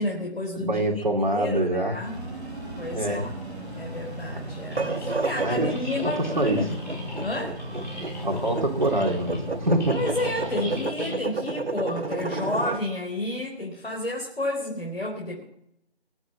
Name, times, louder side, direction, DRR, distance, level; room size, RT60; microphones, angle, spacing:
voice 1, 0.0-1.0 1.3-2.2 2.8-3.3 3.7-6.8 7.2-7.6 9.9-15.4, left 1 dB, 65° left, -1 dB, 4.2 m, -31 dB
voice 2, 0.6-2.0 2.9-3.2 5.4-5.7 6.0-6.6 8.2-10.0, right 1 dB, 45° right, 2 dB, 2.7 m, -25 dB
sound 1, 2.0-10.9, equal, 5° right, 6.9 m, -37 dB
sound 2, 4.6-12.8, right 3 dB, 75° right, 1.5 m, -31 dB
sound 3, 4.7-12.1, left 1 dB, 45° left, 3.5 m, -39 dB
21.0 x 8.1 x 7.3 m, 0.75 s
figure-of-eight pair, 165°, 32 cm